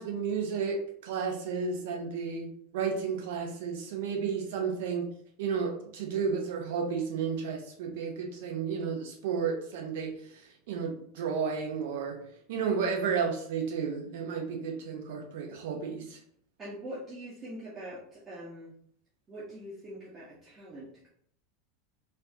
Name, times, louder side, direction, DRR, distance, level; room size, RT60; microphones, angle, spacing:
voice 1, 0.0-5.1 5.4-12.2 12.5-16.2, right 6 dB, 65° right, 2 dB, 0.8 m, -32 dB
voice 2, 16.6-18.8 19.3-21.1, right 1 dB, 30° right, -7 dB, 1.1 m, -43 dB
4.3 x 2.6 x 2.8 m, 0.63 s
figure-of-eight pair, 85°, 0 cm